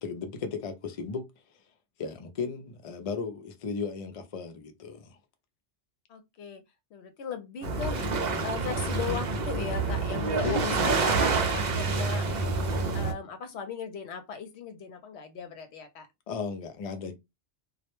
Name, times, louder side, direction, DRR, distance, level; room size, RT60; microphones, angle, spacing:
voice 1, 0.0-1.3 2.0-5.2 10.4-10.8 16.3-17.1, left 5 dB, 50° left, 0.4 m, -35 dB
voice 2, 6.1-6.6 6.9-16.1, left 6 dB, 75° left, 0.9 m, -38 dB
sound 1, 7.6-13.1, right 3 dB, 55° right, 0.5 m, -27 dB
2.3 x 2.1 x 2.9 m
omnidirectional pair, 1.1 m